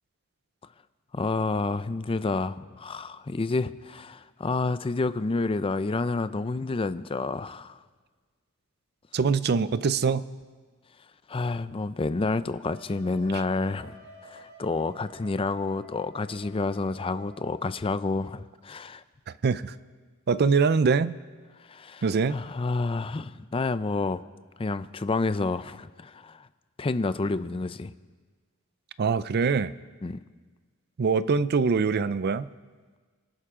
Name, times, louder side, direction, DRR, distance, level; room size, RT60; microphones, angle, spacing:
voice 1, 1.1-7.8 11.3-19.0 21.6-22.0 22.3-24.2 24.6-26.5 26.8-27.9 30.0-30.2, left 3 dB, 25° left, 13 dB, 0.4 m, -29 dB
voice 2, 9.1-10.3 19.4-19.7 20.3-21.2 22.0-22.4 29.0-29.7 31.0-32.5, right 5 dB, 50° right, 16 dB, 0.4 m, -23 dB
Wind instrument woodwind instrument, 12.7-18.2, right 2 dB, 65° right, 3.5 m, -51 dB
25.5 x 11.5 x 3.7 m, 1.4 s
head